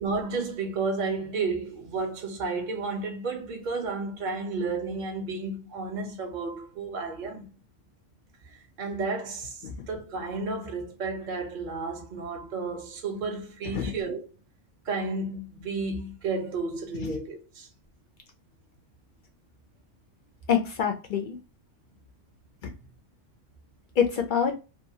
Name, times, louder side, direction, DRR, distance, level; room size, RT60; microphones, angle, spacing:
voice 1, 0.0-7.5 8.5-14.3 14.9-17.7, right 3 dB, 50° right, 0.6 m, -32 dB
voice 2, 20.5-21.4 22.6-22.7 24.0-24.5, left 7 dB, 60° left, 0.5 m, -26 dB
2.8 x 2.3 x 2.6 m
omnidirectional pair, 1.3 m